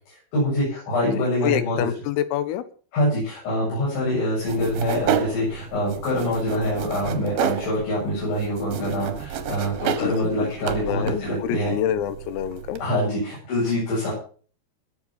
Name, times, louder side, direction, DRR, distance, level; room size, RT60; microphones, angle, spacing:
voice 1, 0.3-1.8 2.9-11.7 12.8-14.1, left 1 dB, 60° left, -7 dB, 10.5 m, -25 dB
voice 2, 1.0-2.6 10.0-10.5 10.8-12.8, left 11 dB, 85° left, 13 dB, 3.9 m, -27 dB
sound 1, 4.5-12.9, right 9 dB, 70° right, 2.5 m, -31 dB
20.5 x 7.4 x 5.8 m, 0.42 s
omnidirectional pair, 5.9 m